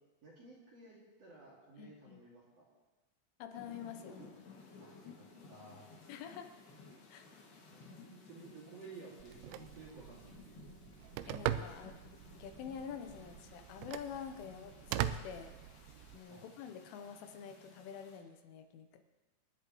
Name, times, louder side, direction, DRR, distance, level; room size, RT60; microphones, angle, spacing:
voice 1, 0.2-2.7 4.8-5.9 7.7-10.6 16.3-16.4, right 3 dB, 45° right, -5 dB, 2.5 m, -55 dB
voice 2, 1.8-2.2 3.4-4.2 6.1-6.5 7.1-7.3 11.3-15.5 16.1-19.0, left 7 dB, 80° left, 7 dB, 3.3 m, -47 dB
sound 1, 3.5-18.2, left 4 dB, 60° left, 3.6 m, -57 dB
Telephone, 9.2-16.2, right 12 dB, 85° right, 2.7 m, -42 dB
26.5 x 10.5 x 3.1 m, 1.2 s
omnidirectional pair, 5.6 m